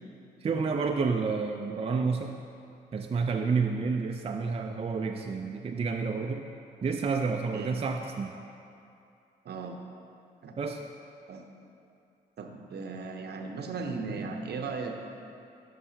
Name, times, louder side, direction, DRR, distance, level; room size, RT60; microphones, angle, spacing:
voice 1, 0.4-2.4 2.9-6.5 6.8-8.3 10.6-10.8, right 4 dB, 30° right, 3 dB, 0.4 m, -29 dB
voice 2, 9.4-9.8 10.4-10.5 11.3-11.4 12.4-15.0, right 4 dB, 55° right, 4 dB, 0.8 m, -36 dB
11.0 x 5.5 x 2.7 m, 2.6 s
hypercardioid pair, 45°, 20 cm